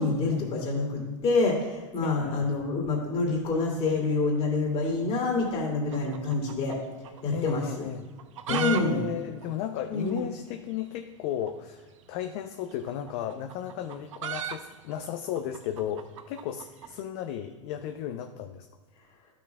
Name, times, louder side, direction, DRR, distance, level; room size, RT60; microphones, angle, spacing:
voice 1, 0.0-6.8 7.2-7.8 8.5-9.0 9.9-10.3, left 3 dB, 35° left, -2 dB, 2.4 m, -27 dB
voice 2, 2.0-2.5 7.3-8.1 8.5-18.7, left 10 dB, 55° left, 7 dB, 0.5 m, -34 dB
sound 1, 5.9-7.2 7.5-7.6 8.1-8.8 9.1-9.2 9.4-9.5 10.1-10.2 11.4-11.6 12.7-16.9, right 9 dB, 75° right, 0.6 m, -36 dB
12.0 x 6.1 x 2.3 m, 1.3 s
hypercardioid pair, 100°, 16 cm